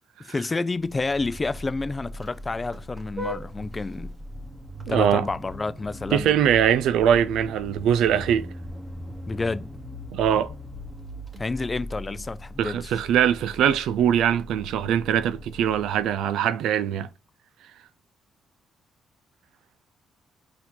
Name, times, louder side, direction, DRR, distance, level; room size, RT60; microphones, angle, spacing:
voice 1, 0.2-4.1 4.9-6.3 9.3-9.7 11.4-13.0, left 3 dB, 25° left, 0.3 m, -29 dB
Vehicle horn car horn honking, 0.8-16.2, equal, 25° right, 1.1 m, -39 dB
voice 2, 4.9-5.3 6.1-8.5 10.1-10.5 12.6-17.1, right 9 dB, 85° right, 0.4 m, -22 dB
4.5 x 2.8 x 3.8 m
cardioid pair, 90°, 0 cm